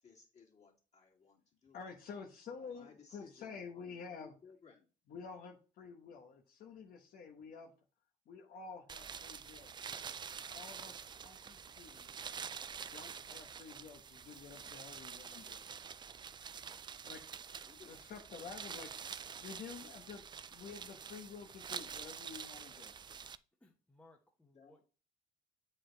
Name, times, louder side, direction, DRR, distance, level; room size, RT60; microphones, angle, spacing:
voice 1, 0.0-1.8 2.7-4.9 17.7-18.0 24.5-24.8, left 5 dB, 40° left, 2.5 m, -61 dB
voice 2, 1.7-4.3 5.1-7.7 8.3-9.8 10.5-12.3 12.9-15.7 17.0-17.2 17.8-18.9 19.4-20.2 20.5-22.9, left 5 dB, 60° left, 1.2 m, -50 dB
sound 1, 8.9-23.4, right 7 dB, 25° right, 0.4 m, -47 dB
voice 3, 23.6-24.8, left 2 dB, 5° left, 1.1 m, -64 dB
8.0 x 4.5 x 3.9 m
cardioid pair, 110°, 17 cm